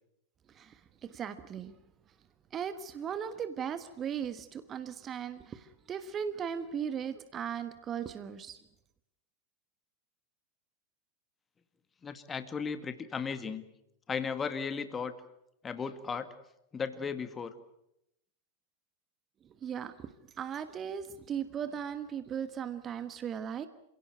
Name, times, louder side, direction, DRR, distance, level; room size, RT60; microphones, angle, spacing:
voice 1, 0.5-1.7 2.5-8.6 19.6-23.7, right 8 dB, 25° right, 12 dB, 1.3 m, -37 dB
voice 2, 12.0-13.6 14.1-15.1 15.6-16.3 16.7-17.5, left 6 dB, 20° left, 10 dB, 1.8 m, -35 dB
28.0 x 17.0 x 9.4 m, 0.82 s
figure-of-eight pair, 90°, 0 cm